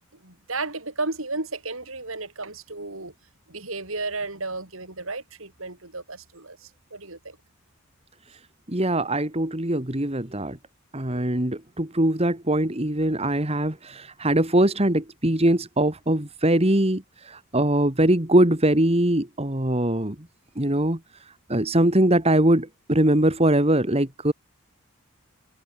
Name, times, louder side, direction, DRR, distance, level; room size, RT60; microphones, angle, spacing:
voice 1, 0.2-3.1 3.5-6.6 6.9-7.4 11.1-11.3, right 3 dB, 70° right, 6.2 m, -33 dB
voice 2, 8.7-10.6 10.9-20.2 20.6-21.0 21.5-24.3, right 1 dB, 30° right, 2.2 m, -22 dB
head